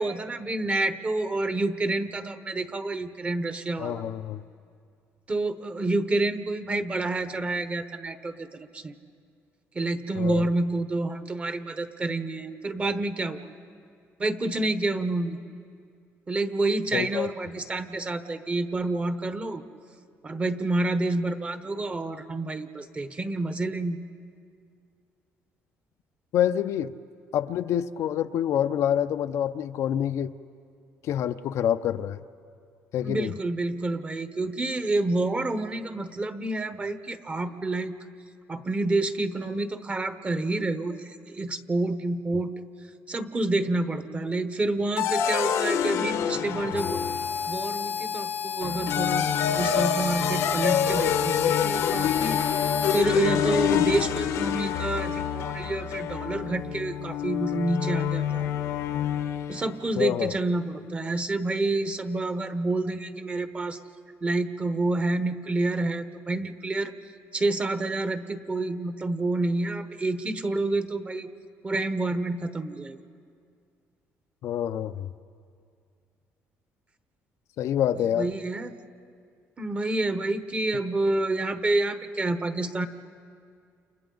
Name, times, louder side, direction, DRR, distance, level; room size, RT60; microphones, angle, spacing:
voice 1, 0.0-4.0 5.3-8.9 9.7-13.5 14.2-15.4 16.3-19.6 20.2-24.0 33.0-38.0 38.5-42.5 43.1-47.0 47.5-52.4 52.9-58.5 59.5-63.8 64.2-66.9 67.3-71.3 71.6-73.0 78.2-78.7 79.6-82.9, right 2 dB, 25° right, 10 dB, 1.1 m, -28 dB
voice 2, 3.8-4.4 10.1-10.5 16.9-17.3 26.3-26.9 27.3-30.3 31.0-32.2 32.9-33.3 60.0-60.4 74.4-75.1 77.6-78.3, left 10 dB, 70° left, 10 dB, 0.6 m, -27 dB
sound 1, 45.0-47.5 48.6-59.7, left 9 dB, 85° left, 1.2 m, -27 dB
Harmonica, 46.7-53.1, left 6 dB, 35° left, 0.8 m, -31 dB
30.0 x 29.0 x 4.0 m, 2.3 s
cardioid pair, 115°, 5 cm